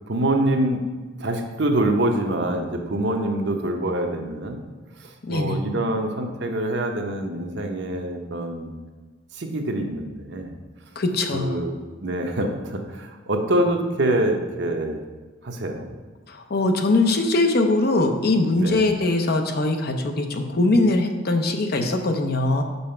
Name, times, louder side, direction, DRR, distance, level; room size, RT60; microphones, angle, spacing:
voice 1, 0.1-0.9 1.2-4.6 5.0-8.7 9.3-10.5 11.3-11.8 12.0-15.0 15.4-15.9 18.6-18.8, right 1 dB, 60° right, 4 dB, 0.8 m, -25 dB
voice 2, 5.2-5.6 11.0-11.6 16.3-22.6, left 2 dB, 55° left, 5 dB, 0.7 m, -21 dB
6.0 x 5.5 x 4.4 m, 1.3 s
head